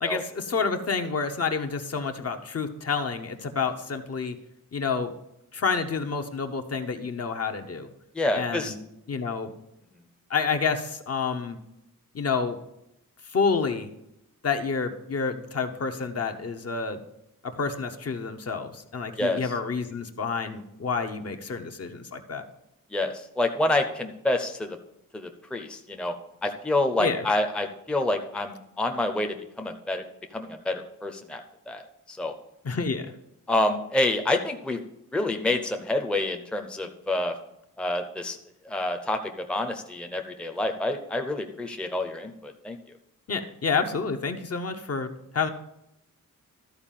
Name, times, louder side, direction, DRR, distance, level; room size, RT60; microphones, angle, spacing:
voice 1, 0.0-4.4 4.7-5.1 5.5-7.9 8.3-8.7 9.1-9.5 10.3-11.6 12.1-12.6 13.3-13.9 14.4-17.0 17.6-22.4 27.0-27.2 32.6-33.1 43.3-45.5, left 5 dB, 45° left, 6 dB, 0.9 m, -29 dB
voice 2, 8.1-8.7 19.2-19.4 22.9-24.8 25.1-26.1 26.4-30.0 30.3-31.8 32.1-32.3 33.5-34.8 35.1-37.3 37.8-38.4 38.7-39.2 39.5-42.8, left 2 dB, 5° left, 4 dB, 0.7 m, -28 dB
13.0 x 4.6 x 7.4 m, 0.84 s
wide cardioid pair, 160°, 34 cm